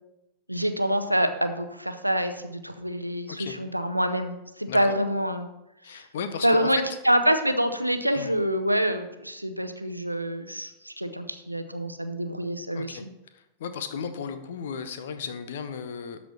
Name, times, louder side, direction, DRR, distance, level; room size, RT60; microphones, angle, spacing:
voice 1, 0.5-5.5 5.9-6.0 6.4-13.1, equal, 90° right, 8 dB, 0.6 m, -26 dB
voice 2, 5.8-6.7 8.1-8.3 12.7-13.0 13.3-16.2, left 6 dB, 60° left, 10 dB, 0.8 m, -35 dB
12.5 x 4.3 x 4.2 m, 0.90 s
figure-of-eight pair, 90°, 0 cm